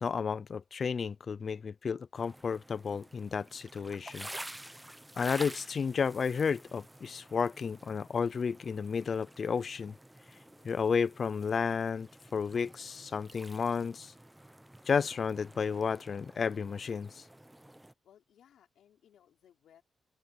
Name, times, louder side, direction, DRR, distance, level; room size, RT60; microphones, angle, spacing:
voice 1, 0.0-4.3 5.2-9.9 10.6-14.1 14.9-17.2, left 6 dB, 50° left, 0.3 m, -32 dB
sound 1, 2.1-17.9, right 1 dB, 10° right, 0.6 m, -50 dB
voice 2, 10.4-10.8 18.0-19.8, left 9 dB, 80° left, 4.2 m, -63 dB
open air
cardioid pair, 90°, 0 cm